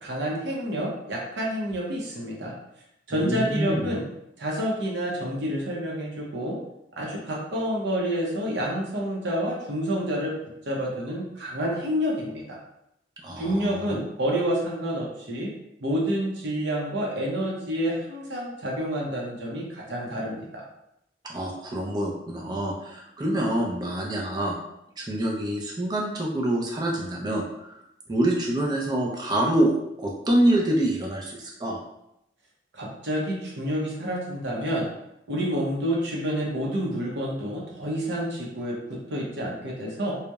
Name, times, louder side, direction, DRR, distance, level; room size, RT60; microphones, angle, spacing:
voice 1, 0.0-2.5 3.1-4.0 4.4-6.6 7.0-10.3 10.7-12.6 13.4-15.5 15.8-20.6 32.7-34.9 35.3-40.2, equal, 70° right, -3 dB, 0.6 m, -28 dB
voice 2, 3.1-4.0 13.2-14.0 21.2-24.5 25.0-27.8 28.1-31.8, right 1 dB, 20° right, -2 dB, 0.4 m, -26 dB
2.8 x 2.0 x 2.2 m, 0.82 s
head